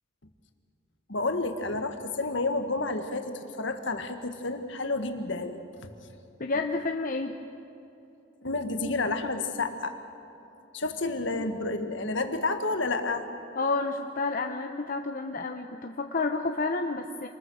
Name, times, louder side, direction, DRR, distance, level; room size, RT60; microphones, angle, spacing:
voice 1, 1.1-5.6 8.4-10.0 10.7-13.3, left 3 dB, 65° left, 7 dB, 1.7 m, -30 dB
voice 2, 6.4-7.3 13.6-17.3, left 3 dB, 45° left, 4 dB, 0.9 m, -30 dB
27.0 x 20.5 x 6.3 m, 2.8 s
head